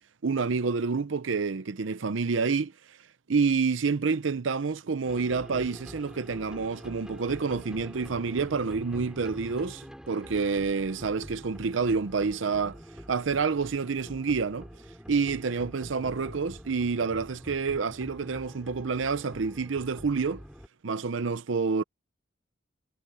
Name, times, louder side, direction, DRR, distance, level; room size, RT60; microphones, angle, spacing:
voice 1, 0.2-3.0 3.3-12.8 13.1-14.7 15.1-20.4 20.8-21.8, right 5 dB, 75° right, 0.6 m, -28 dB
sound 1, 5.0-20.7, equal, 5° right, 4.6 m, -45 dB
head